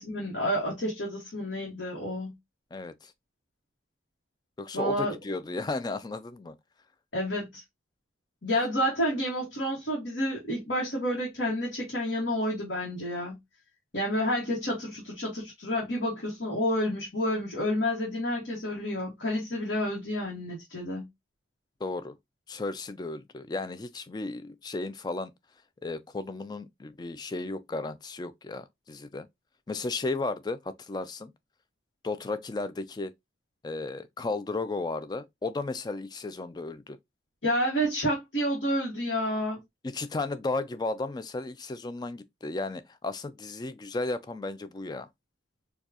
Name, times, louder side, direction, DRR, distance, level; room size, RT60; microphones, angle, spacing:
voice 1, 0.0-2.3 4.7-5.1 7.1-7.6 8.4-13.4 13.9-21.1 37.4-39.6, equal, 65° left, 1.3 m, -29 dB
voice 2, 2.7-3.1 4.6-6.6 21.8-22.1 22.5-25.3 25.8-29.3 29.7-31.3 32.0-33.1 33.6-37.0 39.8-45.1, left 3 dB, 20° left, 0.3 m, -34 dB
4.5 x 2.3 x 2.7 m
head